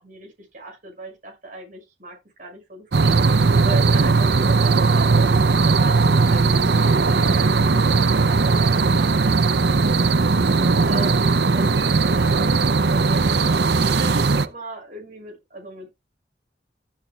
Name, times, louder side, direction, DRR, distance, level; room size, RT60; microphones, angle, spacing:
voice 1, 0.0-5.1 5.6-12.4 12.9-13.2 13.9-15.9, right 2 dB, 50° right, 6.3 m, -38 dB
sound 1, 2.9-14.5, right 4 dB, 70° right, 0.7 m, -18 dB
14.0 x 8.6 x 2.4 m
head